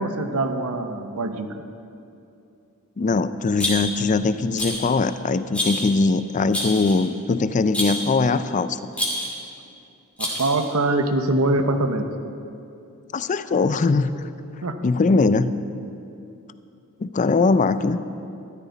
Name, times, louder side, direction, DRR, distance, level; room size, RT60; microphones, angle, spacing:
voice 1, 0.0-1.7 10.2-12.1 14.6-14.8, right 2 dB, 70° right, 7 dB, 0.9 m, -23 dB
voice 2, 3.0-8.8 13.1-14.2 14.8-15.5 17.0-18.0, left 3 dB, 35° left, 13 dB, 0.4 m, -21 dB
Rattle, 3.6-4.1 4.6-4.9 5.5-5.9 6.5-7.1 7.7-8.1 8.9-9.4 10.2-10.7, left 1 dB, 5° left, 2.7 m, -27 dB
14.0 x 13.0 x 4.1 m, 2.6 s
head